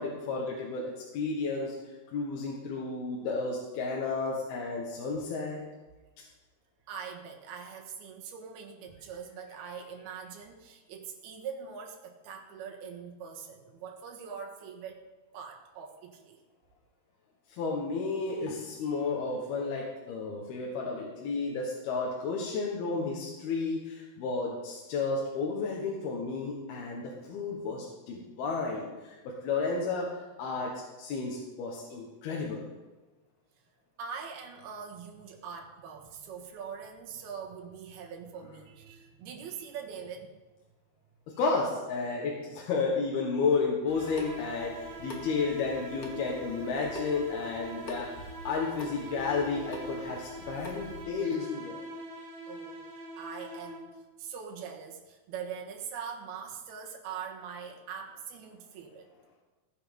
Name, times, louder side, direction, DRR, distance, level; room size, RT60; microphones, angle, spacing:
voice 1, 0.0-5.6 9.6-9.7 17.5-30.1 30.4-32.7 41.4-51.8, left 4 dB, 75° left, -2 dB, 3.4 m, -32 dB
voice 2, 6.9-15.0 15.3-16.4 18.8-19.0 34.0-40.4 52.5-52.8 53.2-59.1, right 6 dB, 75° right, 1 dB, 3.4 m, -42 dB
Water tap faucet / Sink (filling or washing) / Drip, 43.9-51.0, equal, 50° left, 1.1 m, -47 dB
sound 1, 43.9-54.1, equal, 40° right, 4.8 m, -43 dB
16.0 x 9.7 x 5.4 m, 1.2 s
omnidirectional pair, 4.5 m